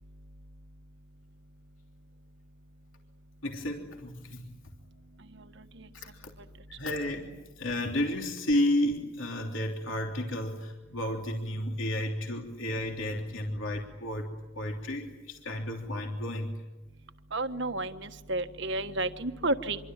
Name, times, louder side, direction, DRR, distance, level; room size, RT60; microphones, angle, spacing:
voice 1, 3.4-4.5 5.9-6.3 6.8-7.3 7.6-14.3 14.5-16.6, left 1 dB, 70° left, 1 dB, 3.3 m, -32 dB
voice 2, 17.3-19.8, right 2 dB, 60° right, 8 dB, 1.5 m, -31 dB
26.5 x 24.0 x 9.1 m, 1.0 s
head